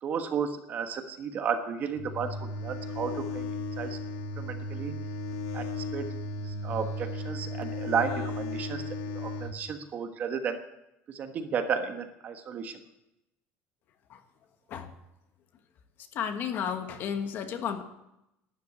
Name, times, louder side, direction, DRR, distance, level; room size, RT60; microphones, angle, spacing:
voice 1, 0.0-4.0 4.4-4.9 5.5-6.1 6.4-8.8 9.1-10.6 11.1-12.8, right 6 dB, 30° right, 7 dB, 1.2 m, -33 dB
sound 1, 2.0-9.6, left 2 dB, 85° left, 1.6 m, -35 dB
voice 2, 16.1-17.8, left 7 dB, 40° left, 7 dB, 1.4 m, -32 dB
12.0 x 10.5 x 8.3 m, 0.87 s
cardioid pair, 180°, 5 cm